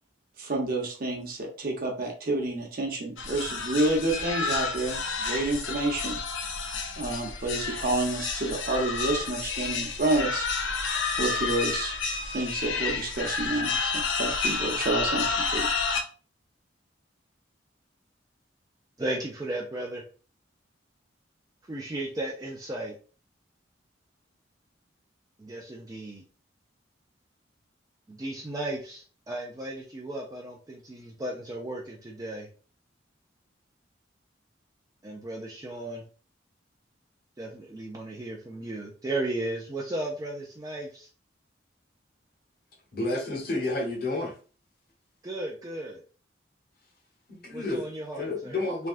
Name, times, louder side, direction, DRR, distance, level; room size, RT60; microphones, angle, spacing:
voice 1, 0.4-6.2 7.0-10.5 11.2-11.9 12.2-15.7, right 2 dB, 50° right, 0 dB, 0.8 m, -29 dB
sound 1, 3.2-16.0, left 4 dB, 90° left, 0.5 m, -30 dB
voice 2, 19.0-20.0 21.7-22.9 25.4-26.2 28.1-32.5 35.0-36.1 37.4-41.1 45.2-46.0 47.5-48.6, right 1 dB, 20° right, 0 dB, 0.4 m, -35 dB
voice 3, 42.9-44.4 47.3-47.9 48.2-48.9, left 2 dB, 55° left, -1 dB, 0.9 m, -30 dB
3.3 x 2.3 x 2.4 m, 0.38 s
head